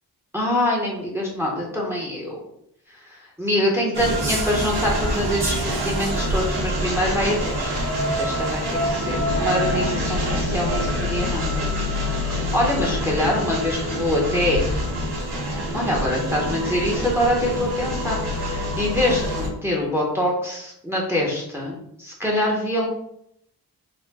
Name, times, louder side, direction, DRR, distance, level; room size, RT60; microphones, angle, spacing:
voice 1, 0.3-2.4 2.9-11.7 12.0-14.7 15.7-22.9, left 1 dB, 5° right, -2 dB, 0.9 m, -25 dB
sound 1, 3.9-19.5, equal, 75° right, 1.1 m, -25 dB
4.2 x 2.2 x 4.1 m, 0.74 s
wide cardioid pair, 90°, 39 cm